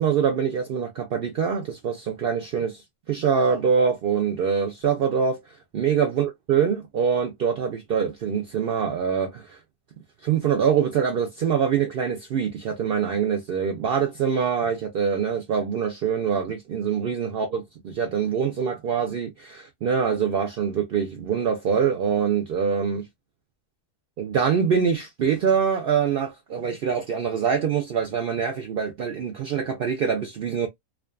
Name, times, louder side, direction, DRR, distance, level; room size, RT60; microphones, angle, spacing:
voice 1, 0.0-5.4 5.7-9.6 10.2-23.1 24.2-30.7, right 7 dB, 70° right, 0.5 m, -24 dB
2.5 x 2.4 x 2.2 m
omnidirectional pair, 1.5 m